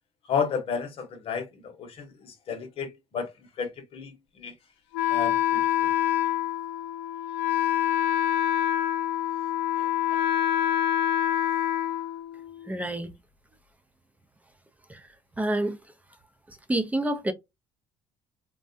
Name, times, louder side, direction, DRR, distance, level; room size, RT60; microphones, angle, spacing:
voice 1, 0.2-4.5 5.1-5.9 9.8-10.5, left 6 dB, 55° left, 0.8 m, -33 dB
Wind instrument woodwind instrument, 4.9-12.7, left 11 dB, 80° left, 0.5 m, -26 dB
voice 2, 12.7-13.1 14.9-15.0 15.4-15.8 16.7-17.3, right 1 dB, 10° right, 0.5 m, -27 dB
3.2 x 2.2 x 2.6 m
supercardioid pair, 75°, 12 cm